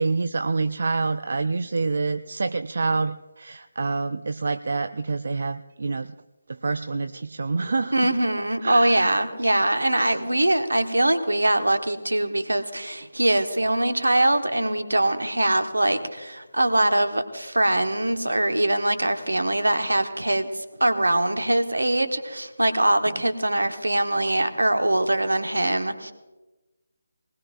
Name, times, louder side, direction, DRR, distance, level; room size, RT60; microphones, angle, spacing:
voice 1, 0.0-6.1 6.5-8.1 8.6-9.5 9.8-10.2, right 3 dB, 55° right, 11 dB, 0.4 m, -27 dB
voice 2, 7.9-26.1, right 1 dB, 75° right, 8 dB, 1.3 m, -22 dB
22.0 x 19.5 x 2.5 m, 1.1 s
figure-of-eight pair, 150°, 0 cm